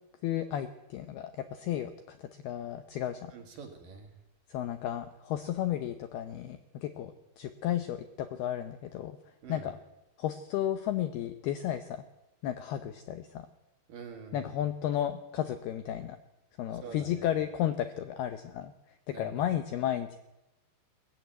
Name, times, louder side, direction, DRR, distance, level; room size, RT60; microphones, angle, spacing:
voice 1, 0.2-3.3 4.5-9.2 9.5-9.8 10.2-12.0 12.4-13.5 14.3-16.2 16.6-18.7 19.1-20.2, left 11 dB, 80° left, 10 dB, 2.3 m, -33 dB
voice 2, 3.3-4.1 9.4-9.7 13.9-14.6 16.8-17.3 19.1-19.3, right 5 dB, 55° right, 5 dB, 3.2 m, -46 dB
21.0 x 14.5 x 9.4 m, 0.93 s
omnidirectional pair, 5.7 m